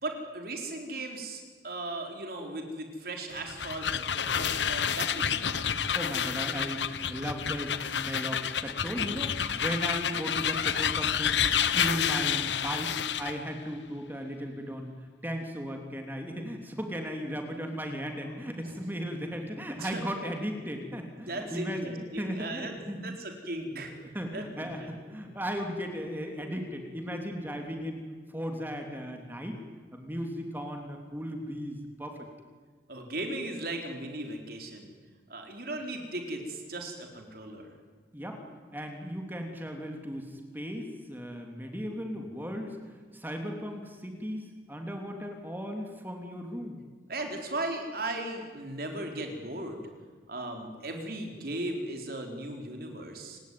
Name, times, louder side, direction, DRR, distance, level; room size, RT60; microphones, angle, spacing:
voice 1, 0.0-5.8 19.8-20.0 21.2-22.7 23.0-23.9 24.3-24.9 32.9-34.9 35.3-37.7 47.1-49.8 50.3-53.4, right 1 dB, 55° right, 3 dB, 4.4 m, -37 dB
sound 1, 3.3-13.4, left 8 dB, 90° left, 1.1 m, -29 dB
voice 2, 5.9-14.9 15.2-23.2 23.6-28.0 28.3-29.6 29.9-32.2 38.1-38.4 38.7-42.8 43.1-46.8, equal, 10° right, 3 dB, 3.1 m, -36 dB
29.5 x 18.5 x 9.5 m, 1.5 s
head